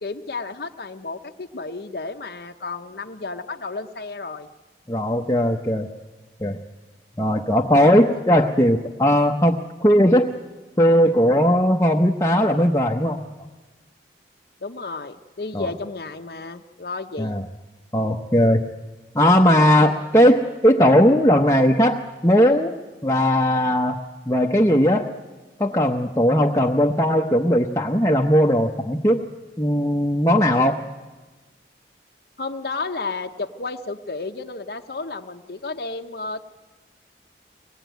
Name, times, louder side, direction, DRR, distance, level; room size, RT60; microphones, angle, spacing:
voice 1, 0.0-4.5 7.9-8.0 14.6-17.3 32.4-36.4, left 3 dB, 60° left, 4 dB, 0.8 m, -32 dB
voice 2, 4.9-5.9 6.4-6.6 7.2-10.3 10.8-13.2 15.5-15.7 17.2-17.4 17.9-18.7 19.1-24.0 24.3-25.1 25.6-29.2 29.6-30.8, equal, 15° left, 1 dB, 0.8 m, -18 dB
24.0 x 19.0 x 9.2 m, 1.3 s
head